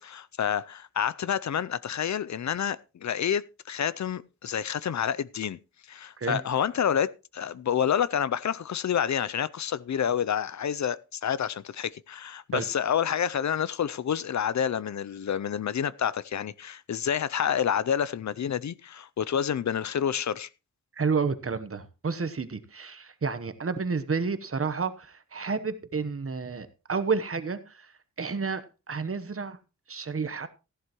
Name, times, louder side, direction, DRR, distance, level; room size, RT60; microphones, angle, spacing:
voice 1, 0.0-5.6 5.9-20.5, left 8 dB, 65° left, 0.5 m, -28 dB
voice 2, 21.0-27.9 28.2-29.6 29.9-30.5, right 5 dB, 45° right, 1.0 m, -30 dB
14.5 x 11.0 x 3.0 m
wide cardioid pair, 105°, 30 cm